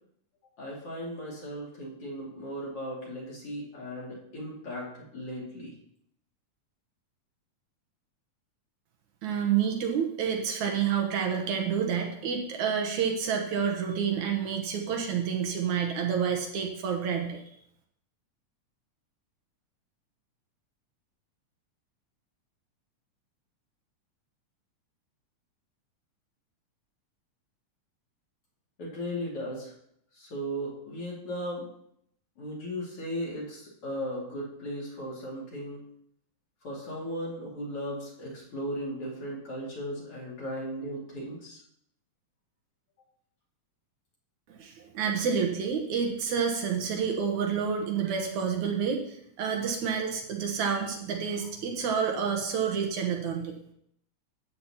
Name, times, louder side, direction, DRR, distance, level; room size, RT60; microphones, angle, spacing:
voice 1, 0.6-5.7 28.8-29.8 30.1-31.7 32.4-35.8 36.6-41.6, equal, 45° left, -4 dB, 3.1 m, -36 dB
voice 2, 9.2-17.4 44.5-53.6, right 7 dB, 70° right, 2 dB, 2.4 m, -29 dB
13.5 x 8.5 x 2.9 m, 0.71 s
omnidirectional pair, 3.7 m